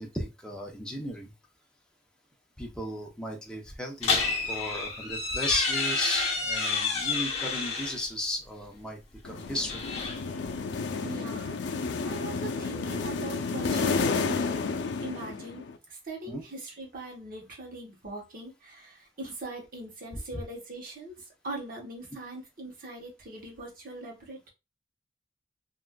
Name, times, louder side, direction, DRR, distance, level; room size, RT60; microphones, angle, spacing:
voice 1, 0.0-1.3 2.6-9.0 9.2-9.8 16.2-16.4 20.3-20.4, left 1 dB, 5° left, 0.7 m, -35 dB
sound 1, 4.0-8.1 9.4-10.6, left 4 dB, 35° left, 0.9 m, -29 dB
sound 2, 9.2-15.8, left 4 dB, 75° left, 0.4 m, -31 dB
voice 2, 11.0-14.7 15.0-21.1 21.4-24.5, right 2 dB, 55° right, 1.0 m, -41 dB
3.5 x 2.5 x 2.2 m
head